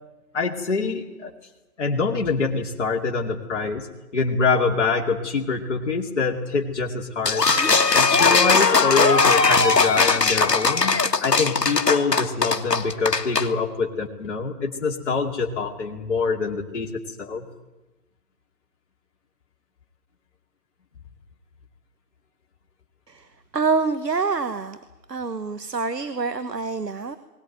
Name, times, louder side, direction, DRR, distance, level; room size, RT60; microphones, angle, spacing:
voice 1, 0.3-1.3 1.8-3.9 4.1-7.6 7.9-17.4, left 4 dB, 45° left, -1 dB, 2.6 m, -25 dB
sound 1, 7.3-13.5, left 4 dB, 80° left, 1.8 m, -19 dB
voice 2, 23.5-24.8 25.1-27.2, right 4 dB, 85° right, 12 dB, 1.4 m, -26 dB
21.0 x 19.0 x 9.1 m, 1.1 s
figure-of-eight pair, 150°, 48 cm